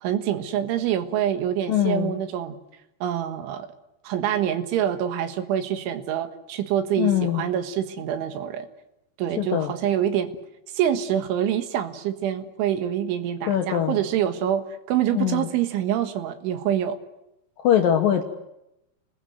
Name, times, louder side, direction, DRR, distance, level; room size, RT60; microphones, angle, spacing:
voice 1, 0.0-2.6 3.0-3.7 4.0-8.7 9.2-10.3 10.7-17.0, right 10 dB, 80° right, 9 dB, 3.8 m, -26 dB
voice 2, 1.7-2.1 7.0-7.4 9.4-9.7 13.5-14.0 15.1-15.5 17.6-18.2, left 10 dB, 65° left, 4 dB, 2.2 m, -22 dB
28.5 x 20.5 x 8.0 m, 0.86 s
omnidirectional pair, 5.6 m